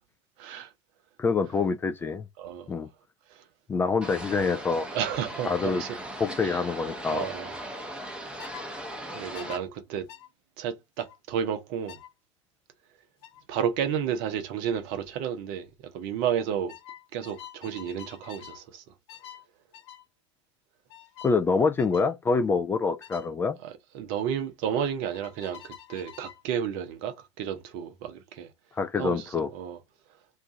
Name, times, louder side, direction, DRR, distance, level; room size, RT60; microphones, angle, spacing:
voice 1, 0.4-0.7 2.4-2.7 4.9-6.0 6.4-6.6 7.1-7.6 9.1-10.1 10.6-12.0 13.5-16.7 17.1-18.8 23.6-28.5 29.0-29.8, right 8 dB, 45° right, 0.8 m, -32 dB
voice 2, 1.2-2.2 2.7-2.9 3.7-4.9 5.4-5.8 6.2-7.3 21.2-23.6 28.8-29.5, left 4 dB, 15° left, 0.3 m, -26 dB
sound 1, 4.0-9.6, equal, 5° right, 0.7 m, -38 dB
sound 2, 8.4-8.7 9.3-9.6 10.1-10.3 11.0-11.2 11.9-12.1 13.2-13.4 14.9-15.1 15.4-15.8 16.7-18.6 19.1-19.4 19.7-20.0 20.9-21.4 21.8-22.1 23.0-23.3 25.1-26.4, left 11 dB, 55° left, 0.7 m, -46 dB
2.6 x 2.4 x 4.0 m
figure-of-eight pair, 85°, 16 cm